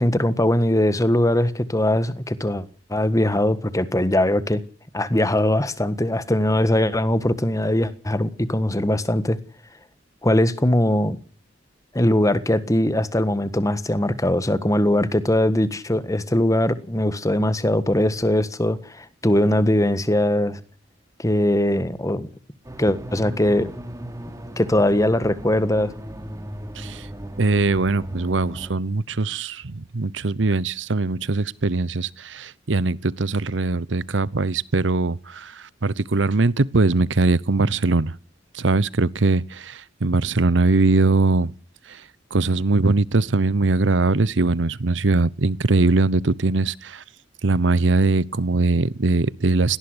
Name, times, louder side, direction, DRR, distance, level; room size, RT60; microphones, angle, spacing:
voice 1, 0.0-2.6 2.9-4.6 4.9-9.4 10.2-11.2 11.9-20.6 21.2-22.3 22.8-23.7 24.6-25.9, left 1 dB, 20° left, 1.5 m, -21 dB
sound 1, 22.6-28.7, right 1 dB, 20° right, 3.2 m, -36 dB
voice 2, 26.8-27.1 27.4-38.1 38.5-41.5 41.9-42.0 42.3-47.0 47.4-49.8, right 3 dB, 80° right, 0.9 m, -21 dB
18.5 x 17.5 x 8.1 m
head